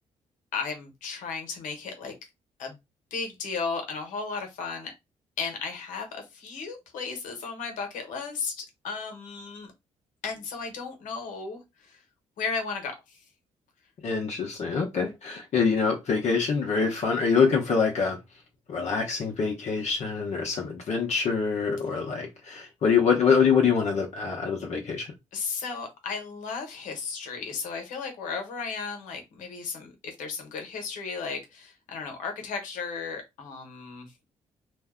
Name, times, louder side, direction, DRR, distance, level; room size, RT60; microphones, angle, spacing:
voice 1, 0.5-2.1 2.6-2.8 3.1-4.9 5.4-9.7 10.2-12.0 12.4-13.2 25.3-34.1, left 5 dB, 90° left, 5 dB, 1.0 m, -35 dB
voice 2, 14.0-18.2 18.7-25.1, left 5 dB, 60° left, 0 dB, 0.8 m, -25 dB
2.6 x 2.1 x 3.6 m, 0.21 s
cardioid pair, 80°, 13 cm